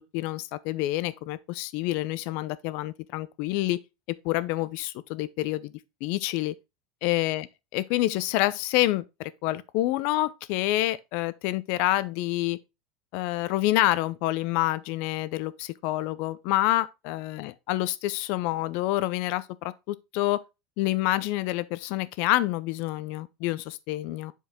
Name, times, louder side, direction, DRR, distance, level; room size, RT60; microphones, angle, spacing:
voice 1, 0.1-3.8 4.1-5.7 6.0-6.5 7.0-7.5 7.7-12.6 13.1-20.4 20.8-24.3, left 16 dB, 65° left, 0.6 m, -27 dB
8.0 x 4.7 x 3.6 m
supercardioid pair, 135°, 3 cm